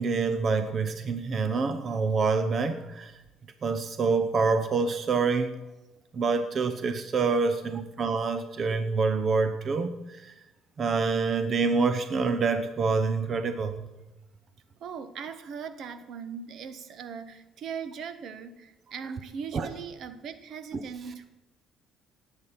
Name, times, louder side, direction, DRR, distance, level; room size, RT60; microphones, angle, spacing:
voice 1, 0.0-3.2 3.6-5.6 6.1-10.3 10.8-13.9 19.5-19.7, right 4 dB, 45° right, 9 dB, 1.0 m, -26 dB
voice 2, 14.8-21.3, right 6 dB, 60° right, 12 dB, 1.2 m, -39 dB
18.5 x 8.6 x 5.9 m, 0.99 s
cardioid pair, 95°, 0 cm